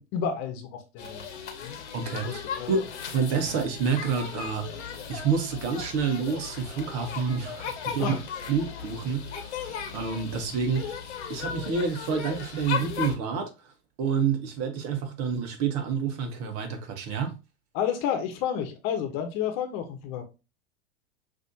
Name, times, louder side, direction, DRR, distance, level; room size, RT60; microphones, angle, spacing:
voice 1, 0.0-1.8 2.2-2.8 3.4-3.5 8.0-8.2 17.7-20.2, left 8 dB, 45° left, 1.1 m, -31 dB
sound 1, 1.0-13.1, left 7 dB, 75° left, 1.2 m, -37 dB
voice 2, 1.9-2.4 2.7-2.8 3.1-4.8 5.1-8.2 8.5-11.0 11.3-13.5 14.0-17.3, right 6 dB, 45° right, 1.3 m, -28 dB
6.0 x 2.9 x 2.7 m
hypercardioid pair, 95°, 35 cm